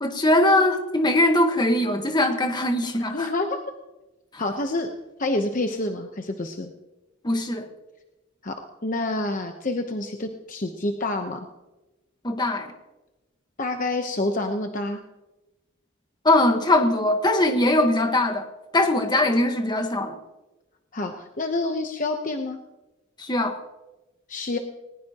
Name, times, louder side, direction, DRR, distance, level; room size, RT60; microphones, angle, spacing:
voice 1, 0.0-3.3 7.2-7.7 12.2-12.7 16.2-18.5 18.7-20.2 23.2-23.6, left 1 dB, 20° left, 5 dB, 1.4 m, -21 dB
voice 2, 3.1-3.6 4.4-4.9 5.2-6.7 8.4-8.5 8.8-11.4 13.6-15.0 20.9-22.6 24.3-24.6, left 2 dB, 40° left, 4 dB, 0.9 m, -27 dB
20.0 x 19.5 x 3.0 m, 1.0 s
head